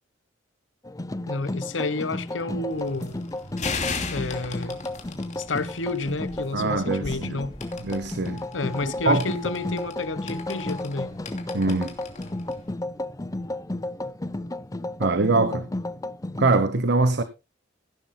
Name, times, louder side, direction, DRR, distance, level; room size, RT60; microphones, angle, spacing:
sound 1, 0.8-16.7, left 1 dB, 20° left, 0.7 m, -33 dB
voice 1, 1.3-3.2 4.1-4.8 5.4-7.5 8.5-11.1, left 3 dB, 75° left, 1.2 m, -30 dB
sound 2, 2.7-12.7, left 4 dB, 40° left, 2.9 m, -38 dB
voice 2, 6.5-7.4 7.8-8.4 9.0-9.3 11.5-11.9 15.0-15.7 16.4-17.2, right 3 dB, 60° right, 1.1 m, -23 dB
16.5 x 11.5 x 2.3 m
head